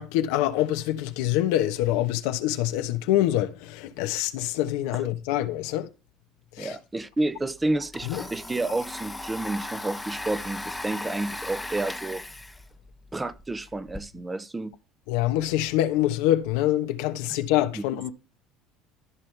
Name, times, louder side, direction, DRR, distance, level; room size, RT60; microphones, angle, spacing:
voice 1, 0.0-5.9 6.6-6.7 8.1-8.2 15.1-18.1, left 13 dB, 85° left, 1.1 m, -25 dB
voice 2, 6.6-12.2 13.1-14.8 17.7-17.8, right 2 dB, 15° right, 0.8 m, -30 dB
Domestic sounds home sounds, 7.0-7.1 7.4-14.0, left 2 dB, 5° left, 0.9 m, -38 dB
14.0 x 5.6 x 3.4 m
cardioid pair, 115°, 0 cm